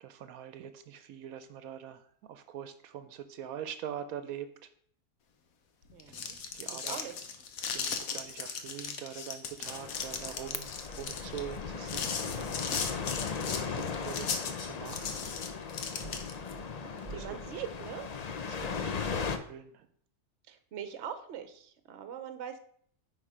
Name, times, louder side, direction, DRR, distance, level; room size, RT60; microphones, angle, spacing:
voice 1, 0.0-4.5 6.1-7.0 7.7-12.6 13.4-15.2 17.1-17.6 18.4-19.9, right 9 dB, 85° right, 11 dB, 1.1 m, -44 dB
sound 1, 5.9-16.5, left 6 dB, 80° left, 1.4 m, -37 dB
voice 2, 5.9-6.4 6.7-7.3 16.7-18.1 20.5-22.6, right 8 dB, 55° right, 10 dB, 1.0 m, -42 dB
sound 2, 9.7-19.4, left 5 dB, 55° left, 0.4 m, -37 dB
sound 3, 11.7-18.1, right 3 dB, 10° right, 1.6 m, -53 dB
9.9 x 4.1 x 4.9 m, 0.63 s
omnidirectional pair, 1.5 m